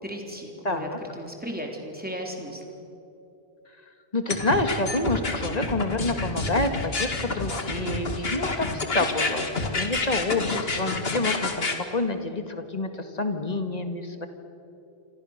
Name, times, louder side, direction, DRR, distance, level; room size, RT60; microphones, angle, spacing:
voice 1, 0.0-0.9 1.2-2.8, equal, 10° right, 1 dB, 3.8 m, -35 dB
voice 2, 0.6-1.0 4.1-14.3, left 2 dB, 40° left, 7 dB, 2.0 m, -28 dB
sound 1, 4.3-11.8, left 3 dB, 65° left, 2.4 m, -28 dB
28.0 x 26.5 x 6.7 m, 2.8 s
omnidirectional pair, 1.1 m